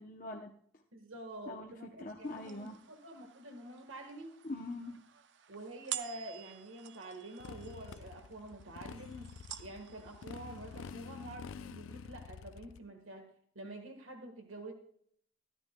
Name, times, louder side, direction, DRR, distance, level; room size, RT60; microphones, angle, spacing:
voice 1, 0.0-0.8 1.5-2.8 4.4-5.0, left 2 dB, 40° left, 1 dB, 0.7 m, -43 dB
voice 2, 0.9-4.3 5.5-9.3 9.6-13.2 13.5-14.7, right 1 dB, 80° right, 3 dB, 1.4 m, -47 dB
sound 1, 2.2-11.4, right 11 dB, 60° right, 0.6 m, -49 dB
Motorcycle, 7.4-12.8, left 6 dB, 80° left, 0.4 m, -48 dB
13.5 x 13.5 x 2.2 m, 0.64 s
head